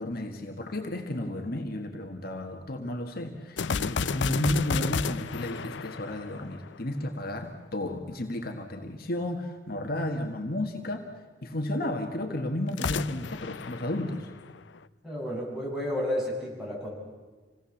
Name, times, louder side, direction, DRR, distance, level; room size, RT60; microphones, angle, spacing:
voice 1, 0.0-11.1 11.4-14.3, left 1 dB, 55° left, 4 dB, 1.7 m, -32 dB
sound 1, 3.6-7.0 12.7-14.8, left 5 dB, 85° left, 0.6 m, -32 dB
voice 2, 15.0-16.9, left 1 dB, 5° right, -4 dB, 6.9 m, -31 dB
27.0 x 17.5 x 7.2 m, 1.4 s
head